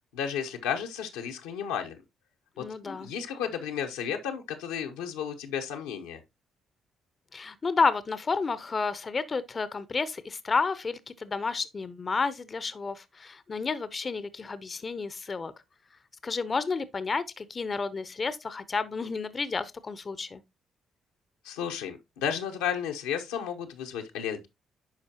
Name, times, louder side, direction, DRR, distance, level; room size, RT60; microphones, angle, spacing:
voice 1, 0.1-2.0 2.6-6.2 21.4-24.5, left 8 dB, 85° left, 0.8 m, -33 dB
voice 2, 2.6-3.1 7.3-15.5 16.2-20.4, left 4 dB, 40° left, 0.6 m, -31 dB
10.5 x 4.4 x 2.8 m
hypercardioid pair, 45°, 0 cm